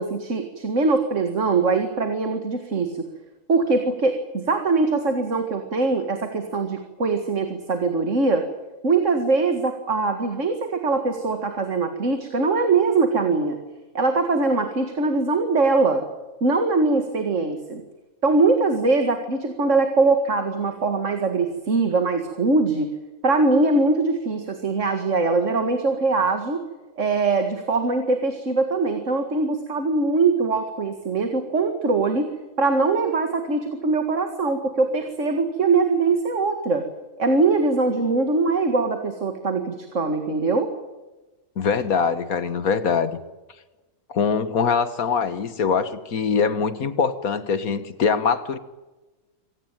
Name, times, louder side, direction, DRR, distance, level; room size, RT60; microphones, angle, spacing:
voice 1, 0.0-3.1 3.5-8.5 8.8-13.6 13.9-16.0 16.4-17.8 18.2-22.9 23.2-26.6 27.0-32.3 32.6-36.9 37.2-40.7, right 3 dB, 55° right, 6 dB, 2.3 m, -22 dB
voice 2, 41.6-43.2 44.1-48.6, left 5 dB, 75° left, 13 dB, 1.9 m, -23 dB
26.0 x 18.0 x 9.1 m, 1.1 s
omnidirectional pair, 1.5 m